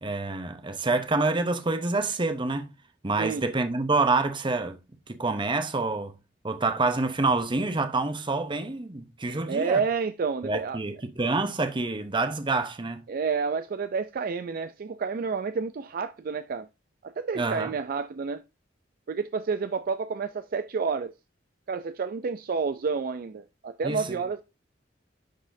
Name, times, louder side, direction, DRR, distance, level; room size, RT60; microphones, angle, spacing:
voice 1, 0.0-2.7 3.0-4.8 5.1-6.1 6.4-9.8 10.4-13.0 17.4-17.7 23.8-24.2, right 3 dB, 25° right, 0.8 m, -27 dB
voice 2, 9.5-10.8 13.1-16.7 17.0-18.4 19.1-21.1 21.7-24.4, right 5 dB, 50° right, 0.4 m, -29 dB
11.5 x 4.2 x 2.6 m
head